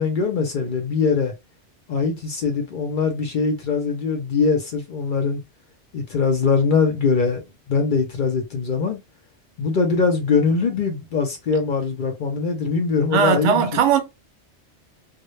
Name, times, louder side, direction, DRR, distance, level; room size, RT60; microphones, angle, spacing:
voice 1, 0.0-1.3 1.9-5.4 5.9-9.0 9.6-13.6, left 5 dB, 60° left, 0.6 m, -22 dB
voice 2, 13.1-14.0, right 7 dB, 85° right, 0.9 m, -18 dB
2.1 x 2.0 x 3.0 m
omnidirectional pair, 1.2 m